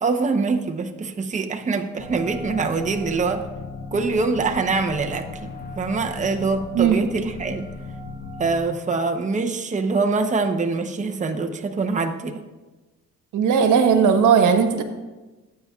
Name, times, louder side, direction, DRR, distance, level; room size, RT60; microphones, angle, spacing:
voice 1, 0.0-3.4 3.9-7.7 8.4-12.4, right 4 dB, 25° right, 4 dB, 0.8 m, -24 dB
sound 1, 2.0-8.6, left 3 dB, 30° left, 1.5 m, -36 dB
voice 2, 13.3-14.8, right 7 dB, 80° right, 6 dB, 1.2 m, -17 dB
18.0 x 8.5 x 2.4 m, 1.2 s
cardioid pair, 90°, 30 cm